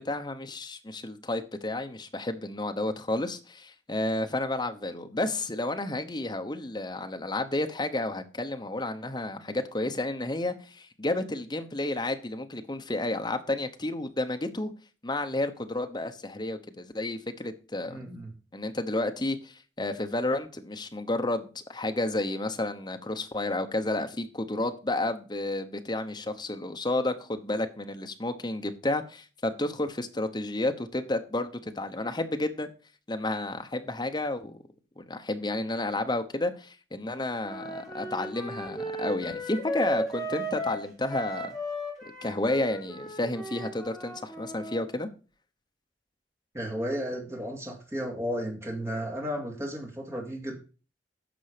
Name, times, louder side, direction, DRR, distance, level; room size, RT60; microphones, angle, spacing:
voice 1, 0.0-14.7 15.0-18.0 18.5-32.7 33.1-34.6 35.0-41.5 42.0-45.1, left 2 dB, 25° left, 1.0 m, -31 dB
voice 2, 17.9-18.3 46.5-50.5, equal, 15° right, 2.5 m, -33 dB
Wind instrument woodwind instrument, 37.4-44.8, equal, ahead, 3.9 m, -35 dB
10.0 x 6.2 x 5.1 m
head